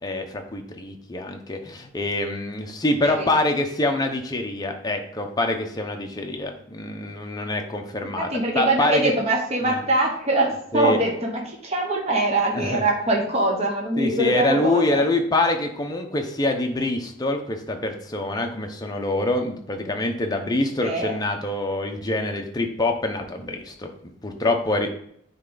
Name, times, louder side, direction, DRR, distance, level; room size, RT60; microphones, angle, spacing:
voice 1, 0.0-8.3 8.5-9.1 9.6-9.8 10.7-11.0 12.5-12.8 14.0-24.9, left 2 dB, 20° left, 3 dB, 0.8 m, -25 dB
voice 2, 8.2-15.0 20.8-21.1, right 2 dB, 30° right, 0 dB, 1.1 m, -23 dB
9.4 x 3.3 x 3.9 m, 0.69 s
head